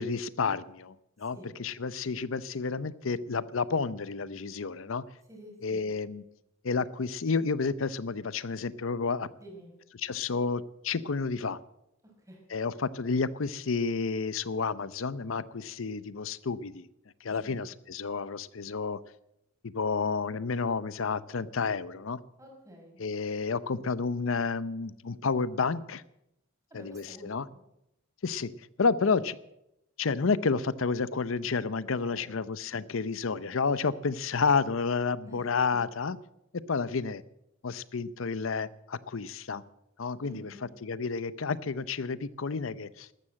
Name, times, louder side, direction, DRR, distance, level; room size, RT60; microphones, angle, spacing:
voice 1, 0.0-5.0 5.6-6.2 6.6-9.3 10.0-11.6 12.5-16.9 17.2-19.0 19.6-22.2 23.0-26.0 26.7-27.5 28.2-28.5 28.8-29.4 30.0-36.2 36.7-37.2 37.6-39.6 40.0-40.5 40.8-43.1, left 4 dB, 75° left, 18 dB, 0.7 m, -30 dB
voice 2, 5.3-5.9 9.4-9.7 12.0-12.4 17.4-17.6 22.4-23.0 26.7-27.6 31.8-32.4 35.2-35.5 35.7-35.8 40.2-40.7, right 1 dB, 15° right, 0 dB, 5.4 m, -49 dB
13.0 x 13.0 x 7.8 m, 0.84 s
head